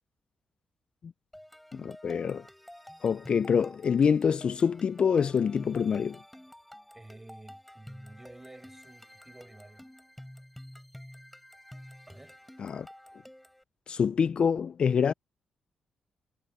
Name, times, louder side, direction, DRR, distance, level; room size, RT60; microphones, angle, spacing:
sound 1, 1.3-13.6, left 1 dB, 5° left, 5.0 m, -50 dB
voice 1, 1.7-2.4 3.0-6.2 12.6-12.9 13.9-15.1, left 6 dB, 55° left, 0.4 m, -26 dB
voice 2, 6.9-9.9 12.1-12.4, right 2 dB, 15° right, 6.3 m, -51 dB
cardioid pair, 70°, 2 cm